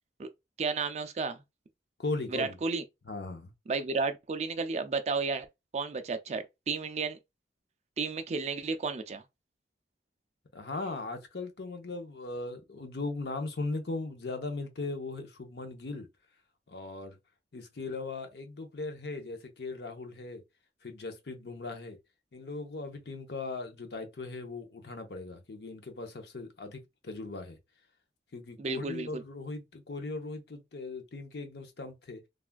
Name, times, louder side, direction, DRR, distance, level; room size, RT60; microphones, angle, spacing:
voice 1, 0.6-1.4 2.3-2.8 3.7-5.5 5.7-7.2 8.0-9.2 28.6-29.2, right 4 dB, 40° right, 0.4 m, -32 dB
voice 2, 2.0-2.6 3.1-3.5 10.5-16.1 16.7-17.2 17.5-20.4 20.8-22.0 22.3-27.6 28.3-32.2, left 3 dB, 65° left, 0.7 m, -38 dB
3.3 x 2.4 x 2.2 m
head